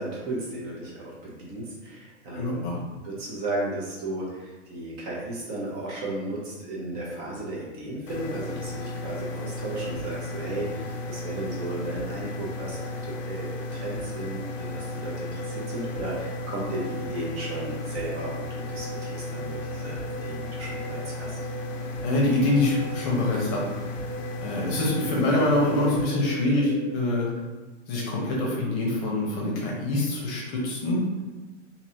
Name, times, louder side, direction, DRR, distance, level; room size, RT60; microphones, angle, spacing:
voice 1, 0.0-2.6 3.0-21.4, right 2 dB, 30° right, -4 dB, 0.7 m, -34 dB
voice 2, 2.4-2.8 22.0-23.6 24.4-27.3 27.9-31.0, left 2 dB, 35° left, -3 dB, 0.8 m, -25 dB
sound 1, 8.1-26.1, left 2 dB, 90° left, 0.6 m, -34 dB
sound 2, 15.3-27.2, right 4 dB, 80° right, 0.7 m, -42 dB
3.0 x 2.8 x 2.7 m, 1.2 s
hypercardioid pair, 140°, 37 cm